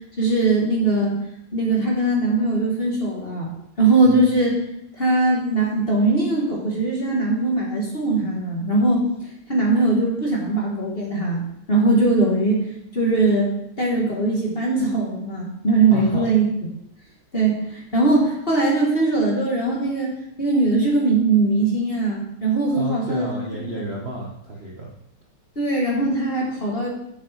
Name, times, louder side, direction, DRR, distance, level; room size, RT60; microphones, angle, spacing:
voice 1, 0.2-1.2 1.5-3.5 3.8-4.6 5.0-9.0 9.5-11.4 11.7-12.7 12.9-16.5 17.3-23.6 25.6-26.9, right 2 dB, 30° left, -3 dB, 1.8 m, -20 dB
voice 2, 15.9-16.3 22.7-24.9, right 1 dB, 40° right, -3 dB, 1.0 m, -31 dB
7.9 x 6.5 x 4.3 m, 0.77 s
omnidirectional pair, 2.3 m